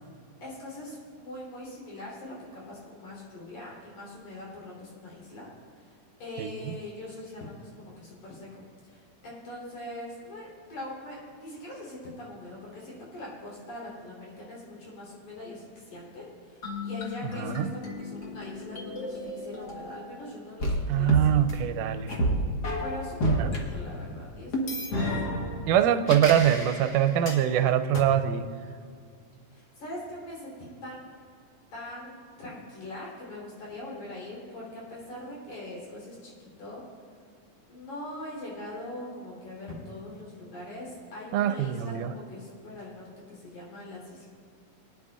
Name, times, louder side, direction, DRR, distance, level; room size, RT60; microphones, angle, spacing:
voice 1, 0.4-5.5 5.8-5.9 6.2-21.4 22.8-25.0 29.5-31.1 31.7-36.3 36.6-36.8 37.7-44.3, left 1 dB, 65° left, -5 dB, 4.9 m, -42 dB
voice 2, 6.4-6.7 17.4-17.7 20.9-22.1 23.4-23.5 25.7-28.5 41.3-42.1, right 10 dB, 85° right, 10 dB, 2.1 m, -24 dB
sound 1, 16.6-20.2 20.6-23.6 24.5-27.4 27.9-28.0, equal, 50° left, 1.2 m, -31 dB
23.0 x 10.0 x 2.4 m, 2.2 s
omnidirectional pair, 3.6 m